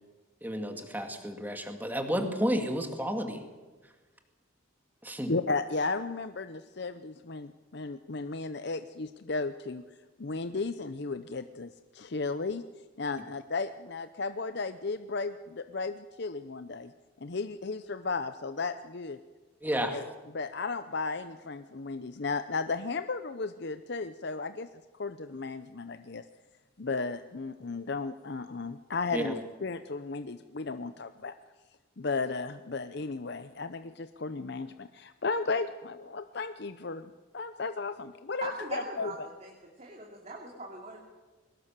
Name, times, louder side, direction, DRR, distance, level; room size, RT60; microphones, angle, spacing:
voice 1, 0.4-3.4 5.0-5.3 19.6-20.0 29.1-29.3, equal, 10° right, 5 dB, 2.2 m, -31 dB
voice 2, 5.3-9.8 10.2-12.6 13.0-16.9 17.2-19.2 19.9-20.1 20.3-24.7 25.0-26.2 26.8-29.4 29.6-31.3 32.0-39.1, left 3 dB, 50° left, 10 dB, 0.7 m, -34 dB
voice 3, 38.4-39.5 39.8-41.0, right 2 dB, 30° right, 0 dB, 2.8 m, -40 dB
22.0 x 19.0 x 7.4 m, 1.3 s
head